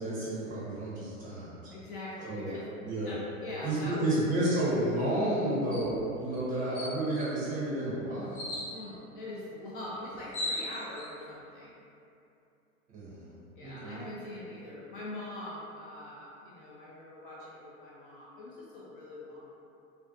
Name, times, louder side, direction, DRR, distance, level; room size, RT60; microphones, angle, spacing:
voice 1, 0.0-1.5 2.2-2.5 2.8-3.1 3.6-8.5 12.9-13.2 13.6-14.0, right 1 dB, 20° right, -9 dB, 0.6 m, -31 dB
voice 2, 1.7-2.7 3.0-4.1 6.5-6.8 8.7-11.8 13.6-19.5, left 1 dB, 40° left, -6 dB, 0.4 m, -43 dB
sound 1, 5.7-5.9 6.3-6.4 6.7-7.3 8.3-8.7 9.8-9.9 10.1-11.1, left 2 dB, 90° left, 0.9 m, -36 dB
2.4 x 2.2 x 2.5 m, 2.7 s
figure-of-eight pair, 105°, 42 cm